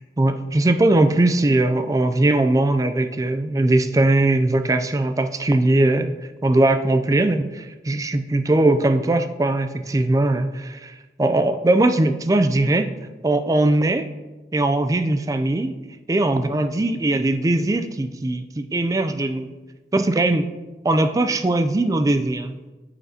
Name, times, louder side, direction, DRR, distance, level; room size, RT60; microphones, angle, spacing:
voice 1, 0.2-6.1 6.4-13.0 13.2-14.1 14.5-15.8 16.1-19.5 19.9-20.5 20.8-22.6, right 2 dB, 20° right, 9 dB, 0.3 m, -20 dB
9.1 x 5.8 x 2.7 m, 1.2 s
head